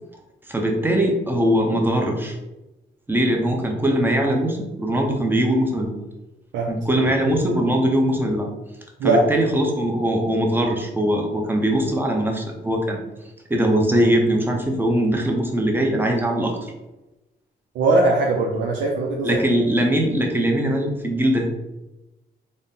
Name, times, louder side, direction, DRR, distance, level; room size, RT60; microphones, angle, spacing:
voice 1, 0.5-2.4 3.1-5.9 6.7-8.5 9.0-13.0 13.5-16.7 19.2-21.5, right 1 dB, 10° right, 1 dB, 0.6 m, -21 dB
voice 2, 17.7-19.4, right 2 dB, 90° right, -2 dB, 0.5 m, -20 dB
4.0 x 2.1 x 3.6 m, 1.0 s
cardioid pair, 125°, 19 cm